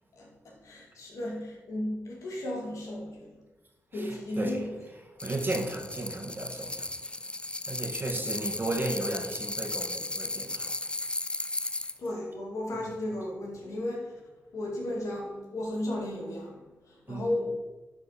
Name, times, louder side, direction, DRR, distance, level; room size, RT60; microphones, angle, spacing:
voice 1, 0.1-3.4 3.9-4.7 8.1-8.3 12.0-14.2 14.5-17.7, left 1 dB, 75° left, 2.1 m, -35 dB
voice 2, 3.9-7.1 7.6-10.9 12.7-12.9 17.1-17.3, right 2 dB, 40° right, 1.7 m, -35 dB
sound 1, 5.2-12.0, left 2 dB, 20° left, 0.5 m, -35 dB
9.9 x 4.5 x 4.1 m
supercardioid pair, 45°, 5 cm